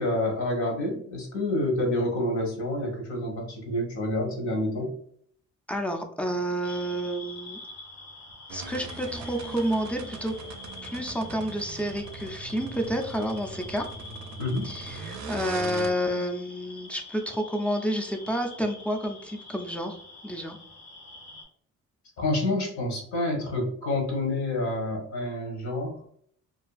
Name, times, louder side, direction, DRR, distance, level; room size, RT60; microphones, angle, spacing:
voice 1, 0.0-4.9 14.4-14.7 22.2-26.1, left 1 dB, 70° left, 1 dB, 1.0 m, -28 dB
voice 2, 5.7-7.6 8.5-10.4 10.8-13.9 14.6-20.0 20.2-20.6, equal, 5° left, 3 dB, 0.3 m, -30 dB
sound 1, 6.6-21.4, left 2 dB, 85° left, 1.4 m, -46 dB
sound 2, 8.5-15.9, right 3 dB, 65° right, 0.4 m, -40 dB
2.5 x 2.3 x 2.3 m, 0.62 s
cardioid pair, 90°, 30 cm